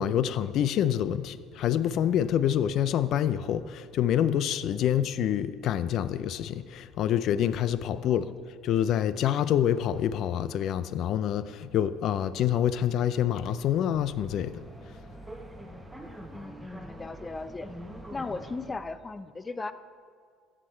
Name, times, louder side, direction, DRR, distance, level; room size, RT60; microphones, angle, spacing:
voice 1, 0.0-8.3 8.6-14.5, left 10 dB, 60° left, 0.5 m, -27 dB
voice 2, 8.0-8.3 16.3-17.8 18.1-19.7, left 3 dB, 25° left, 0.6 m, -37 dB
sound 1, 10.6-18.8, right 1 dB, 5° right, 1.4 m, -46 dB
14.0 x 7.5 x 4.4 m
supercardioid pair, 75°, 0 cm